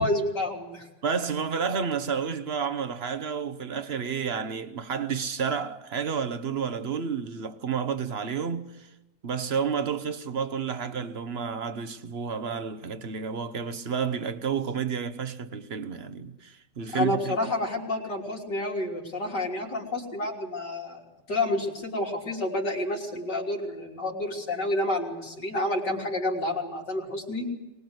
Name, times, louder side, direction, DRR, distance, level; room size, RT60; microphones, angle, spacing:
voice 1, 0.0-0.9 16.9-21.0 21.3-27.5, left 1 dB, 75° left, 4.1 m, -29 dB
voice 2, 1.0-8.9 9.2-17.3, right 6 dB, 40° right, 1.1 m, -30 dB
24.0 x 20.0 x 8.0 m
omnidirectional pair, 1.8 m